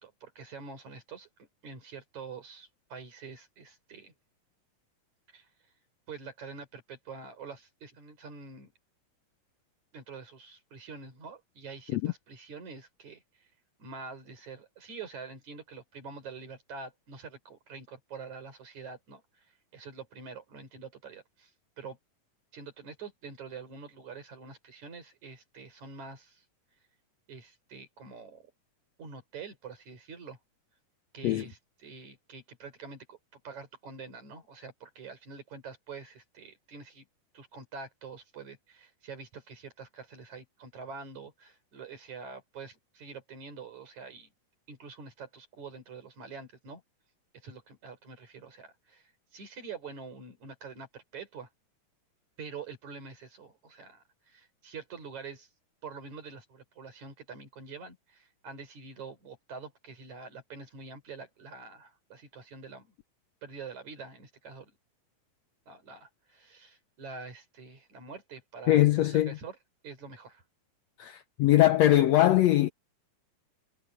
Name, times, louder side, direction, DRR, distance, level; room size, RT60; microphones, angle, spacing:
voice 1, 0.0-4.1 5.3-5.5 6.1-8.7 9.9-13.5 13.8-21.5 21.8-22.0 22.5-26.4 27.3-28.5 29.0-30.4 31.1-33.2 33.4-37.1 37.3-44.3 44.7-46.8 47.3-51.5 52.4-55.5 55.8-62.9 63.4-64.7 65.7-69.6 69.8-70.4, right 5 dB, 60° right, 6.1 m, -46 dB
voice 2, 68.7-69.4 71.0-72.7, left 14 dB, 85° left, 1.5 m, -22 dB
omnidirectional pair, 3.9 m